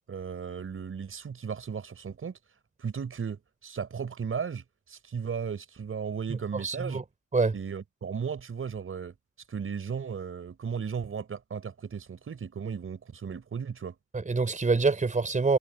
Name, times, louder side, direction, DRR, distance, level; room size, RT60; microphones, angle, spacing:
voice 1, 0.1-2.4 2.8-7.0 7.5-9.2 9.5-14.0, right 6 dB, 45° right, 5.5 m, -35 dB
voice 2, 6.6-7.0 7.3-7.5 14.1-15.6, right 4 dB, 25° right, 4.7 m, -25 dB
cardioid pair, 90°, 30 cm